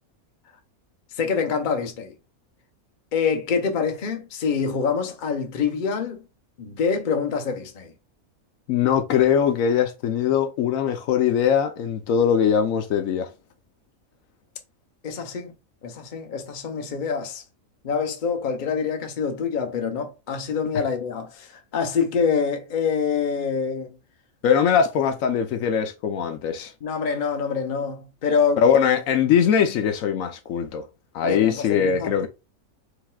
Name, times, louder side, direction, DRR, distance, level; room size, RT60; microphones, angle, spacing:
voice 1, 1.2-2.1 3.1-6.2 6.6-7.9 15.0-15.5 15.8-17.4 17.8-24.0 26.8-28.6 31.2-32.3, left 6 dB, 40° left, 0.8 m, -26 dB
voice 2, 8.7-13.3 24.4-26.7 28.6-30.8 31.1-32.3, left 8 dB, 75° left, 1.0 m, -21 dB
4.9 x 3.5 x 2.2 m
omnidirectional pair, 1.5 m